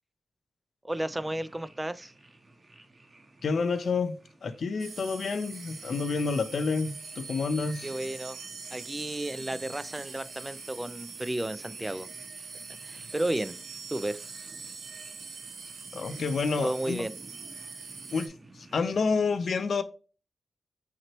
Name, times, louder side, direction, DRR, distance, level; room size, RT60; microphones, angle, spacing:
voice 1, 0.8-2.1 7.8-8.4 8.7-12.1 12.8-13.5 13.9-14.2 16.6-17.1, right 1 dB, 10° right, 0.3 m, -33 dB
sound 1, 0.9-19.2, right 2 dB, 30° right, 1.0 m, -54 dB
voice 2, 3.4-7.9 15.9-17.1 18.1-19.8, left 4 dB, 60° left, 0.5 m, -29 dB
sound 2, 4.8-18.3, right 4 dB, 65° right, 0.8 m, -43 dB
5.9 x 3.0 x 2.9 m
wide cardioid pair, 140°, 0 cm